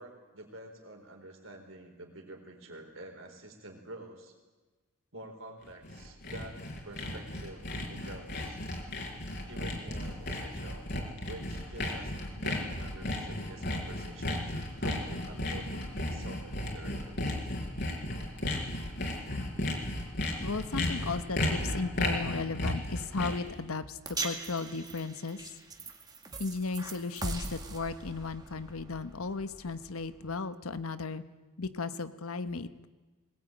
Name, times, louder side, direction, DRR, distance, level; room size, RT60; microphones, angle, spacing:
voice 1, 0.0-4.3 5.1-6.6 6.8-8.6 9.5-10.9 11.3-17.3, right 1 dB, 65° right, 3 dB, 4.3 m, -48 dB
Sawing, 5.7-23.5, left 1 dB, 50° left, 4.5 m, -34 dB
voice 2, 20.4-24.0 24.2-25.4 26.4-31.2 31.6-32.9, left 4 dB, 85° left, 11 dB, 1.2 m, -35 dB
sound 1, 24.0-30.4, right 2 dB, 20° right, 2.1 m, -41 dB
21.5 x 19.5 x 9.1 m, 1.2 s
head